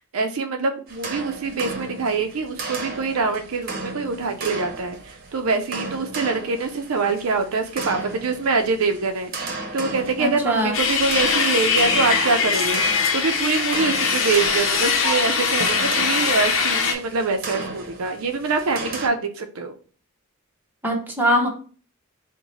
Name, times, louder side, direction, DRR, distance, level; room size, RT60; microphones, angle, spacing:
voice 1, 0.0-19.7, right 4 dB, 70° right, 6 dB, 0.5 m, -24 dB
sound 1, 0.9-19.1, right 3 dB, 45° right, 0.8 m, -35 dB
voice 2, 10.2-10.7 20.8-21.5, equal, 10° right, -1 dB, 0.9 m, -21 dB
sound 2, 10.7-16.9, left 5 dB, 60° left, 0.8 m, -21 dB
4.7 x 2.2 x 4.0 m, 0.41 s
head